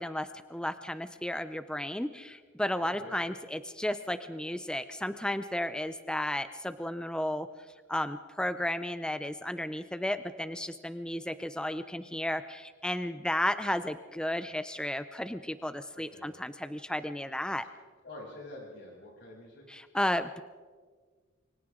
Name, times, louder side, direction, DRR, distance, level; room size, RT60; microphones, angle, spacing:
voice 1, 0.0-7.5 7.9-17.7 19.7-20.4, left 1 dB, 5° left, 11 dB, 0.5 m, -33 dB
voice 2, 2.8-3.1 15.9-16.3 18.0-19.6, left 2 dB, 60° left, -3 dB, 7.7 m, -47 dB
28.5 x 24.0 x 3.8 m, 1.5 s
head